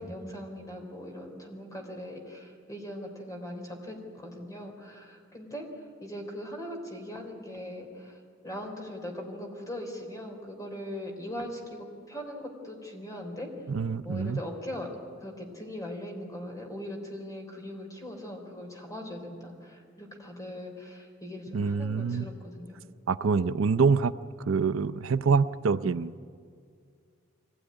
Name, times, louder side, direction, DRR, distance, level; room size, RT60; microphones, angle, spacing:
voice 1, 0.0-5.7 6.0-13.5 14.0-14.9 15.2-22.8, left 1 dB, 15° left, 2 dB, 3.6 m, -40 dB
voice 2, 13.7-14.4 21.5-22.3 23.1-24.1 24.5-26.2, right 5 dB, 80° right, 14 dB, 0.5 m, -26 dB
24.0 x 17.5 x 9.7 m, 2.1 s
head